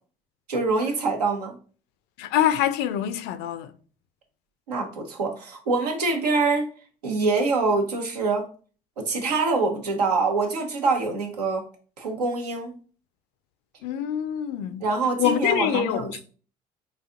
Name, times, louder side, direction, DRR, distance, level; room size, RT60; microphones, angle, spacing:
voice 1, 0.5-1.6 4.7-6.7 7.0-8.5 9.0-11.7 12.0-12.8 14.8-16.1, right 3 dB, 85° right, 0.7 m, -25 dB
voice 2, 2.2-3.7 13.8-14.9 15.2-16.2, left 11 dB, 60° left, 0.4 m, -25 dB
4.1 x 2.5 x 2.3 m
hypercardioid pair, 60°, 20 cm